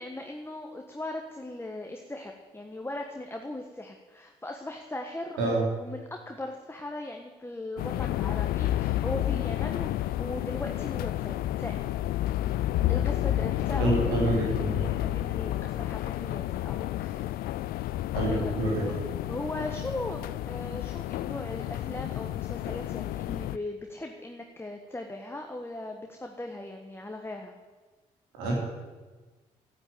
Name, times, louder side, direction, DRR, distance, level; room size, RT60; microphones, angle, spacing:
voice 1, 0.0-11.7 12.9-17.5 18.3-18.5 18.8-18.9 19.3-27.5, left 1 dB, 15° left, 3 dB, 1.5 m, -38 dB
sound 1, 7.8-23.6, left 14 dB, 70° left, 0.4 m, -30 dB
voice 2, 13.8-14.8 18.2-18.8 28.4-28.5, right 2 dB, 90° right, -3 dB, 3.7 m, -27 dB
9.8 x 9.5 x 8.8 m, 1.3 s
hypercardioid pair, 50°, 16 cm